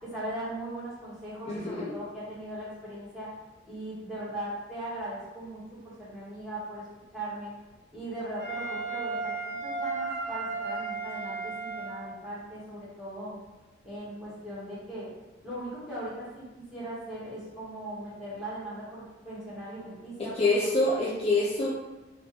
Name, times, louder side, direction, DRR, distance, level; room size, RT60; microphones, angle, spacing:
voice 1, 0.0-3.3 3.7-6.8 7.1-7.5 7.9-13.4 13.8-15.1 15.4-16.4 16.7-20.9, right 1 dB, ahead, -11 dB, 1.3 m, -39 dB
voice 2, 1.5-1.9 20.2-21.7, left 2 dB, 35° left, -6 dB, 0.4 m, -26 dB
Wind instrument woodwind instrument, 8.4-12.1, right 4 dB, 75° right, 0.9 m, -34 dB
2.9 x 2.4 x 3.4 m, 1.1 s
head